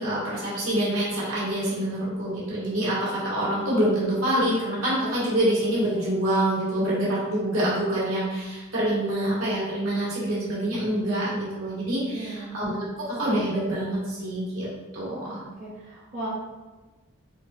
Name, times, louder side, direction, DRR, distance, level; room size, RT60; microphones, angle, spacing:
voice 1, 0.0-14.7 14.9-15.4, right 1 dB, 75° right, -8 dB, 1.4 m, -26 dB
voice 2, 12.1-12.5 15.3-16.3, right 1 dB, 35° right, -8 dB, 0.6 m, -37 dB
3.8 x 2.4 x 2.4 m, 1.2 s
head